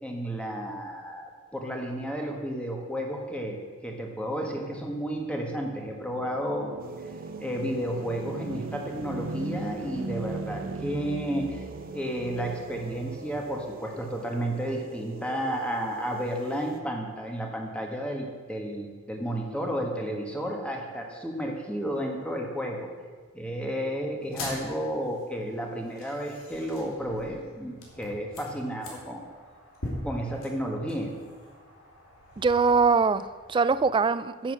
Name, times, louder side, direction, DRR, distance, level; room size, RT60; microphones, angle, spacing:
voice 1, 0.0-3.6 3.8-6.8 7.4-11.7 11.9-22.9 23.3-29.2 30.0-31.1, equal, 5° left, 1 dB, 1.4 m, -32 dB
sound 1, 4.9-14.2, right 3 dB, 80° right, 0.6 m, -39 dB
sound 2, 6.8-16.8, right 2 dB, 45° right, 0.8 m, -44 dB
sound 3, 24.2-33.8, left 1 dB, 85° left, 2.8 m, -43 dB
voice 2, 32.4-34.5, right 4 dB, 25° right, 15 dB, 0.3 m, -23 dB
10.0 x 7.9 x 6.3 m, 1.5 s
head